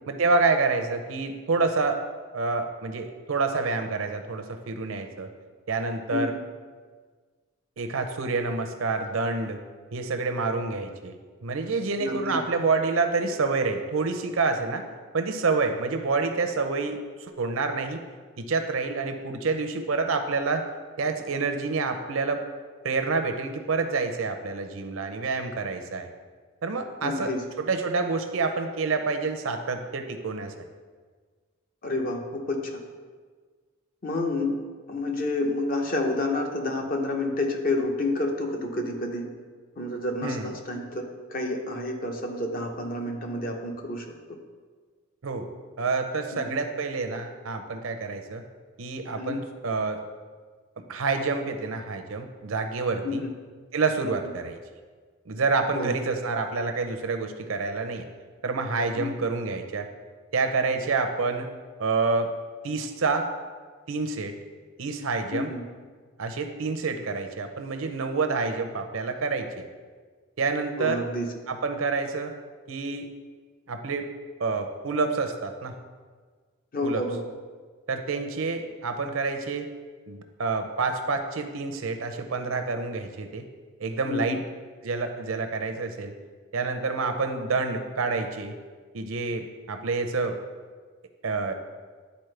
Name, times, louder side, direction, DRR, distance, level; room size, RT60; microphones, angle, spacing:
voice 1, 0.1-2.0 2.3-5.3 5.7-6.3 7.8-9.6 9.9-11.1 11.4-14.8 15.1-18.0 18.4-20.7 21.0-22.4 22.8-26.1 26.6-27.3 27.6-30.5 40.2-40.5 45.2-45.5 45.8-48.4 48.8-50.0 50.9-53.2 53.7-54.6 55.3-58.0 58.4-59.9 60.3-61.5 61.8-62.3 62.6-63.3 63.9-64.3 64.8-65.5 66.2-69.6 70.4-71.0 71.5-72.3 72.7-73.1 73.7-74.1 74.4-75.8 76.8-77.0 77.9-79.7 80.1-83.4 83.8-84.4 84.8-86.1 86.5-88.5 88.9-90.4 91.2-91.5, right 4 dB, 75° right, 6 dB, 0.6 m, -28 dB
voice 2, 12.0-12.4 27.0-27.4 31.8-32.6 34.0-34.6 34.9-39.3 39.8-41.0 41.3-44.0 46.4-46.5 49.2-49.4 53.0-53.3 54.0-54.1 55.7-55.9 59.0-59.1 65.3-65.7 70.8-71.3 76.7-77.2 84.1-84.4, left 2 dB, 45° left, 3 dB, 0.8 m, -29 dB
10.5 x 4.2 x 3.3 m, 1.5 s
head